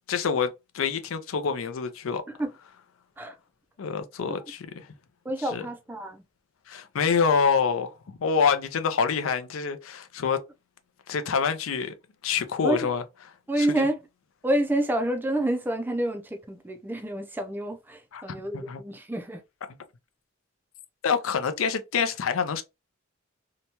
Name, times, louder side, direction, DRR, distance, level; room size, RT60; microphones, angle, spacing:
voice 1, 0.1-2.2 3.8-4.9 5.5-5.6 6.7-10.4 11.1-11.9 12.2-13.0 13.6-13.9 18.1-18.2 18.5-18.8 21.0-22.6, left 6 dB, 75° left, 0.5 m, -26 dB
voice 2, 5.2-6.2 12.6-12.9 13.5-14.0 14.4-19.4, right 1 dB, 10° right, 0.4 m, -28 dB
2.8 x 2.2 x 2.8 m
head